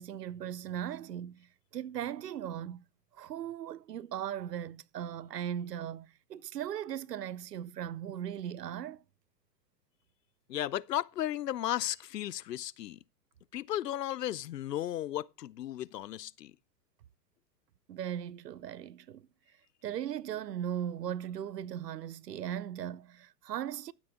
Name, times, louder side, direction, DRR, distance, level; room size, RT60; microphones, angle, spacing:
voice 1, 0.0-2.8 3.1-9.0 17.9-19.3 19.8-23.9, right 10 dB, 85° right, 0.7 m, -38 dB
voice 2, 10.5-13.0 13.5-16.5, left 12 dB, 85° left, 0.6 m, -35 dB
12.5 x 8.2 x 3.6 m
hypercardioid pair, 100°, 47 cm